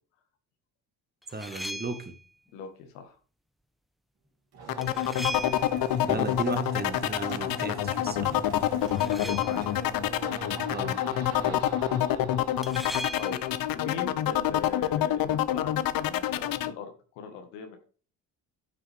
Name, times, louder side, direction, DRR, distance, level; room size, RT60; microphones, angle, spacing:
sound 1, 1.2-2.2 4.8-6.0 8.8-9.8 12.6-13.6, right 1 dB, ahead, 0.7 m, -39 dB
voice 1, 1.3-2.1 6.0-8.4 10.7-11.0, right 2 dB, 25° right, 7 dB, 1.6 m, -34 dB
voice 2, 2.5-3.2 6.1-6.2 8.8-9.6 11.4-11.7 13.1-13.4 13.7-17.8, left 6 dB, 85° left, 5 dB, 1.7 m, -40 dB
sound 2, 4.5-14.1, right 3 dB, 65° right, 2.9 m, -42 dB
sound 3, 4.7-16.7, left 12 dB, 60° left, 0.7 m, -27 dB
9.2 x 5.5 x 3.5 m, 0.39 s
supercardioid pair, 65°, 40 cm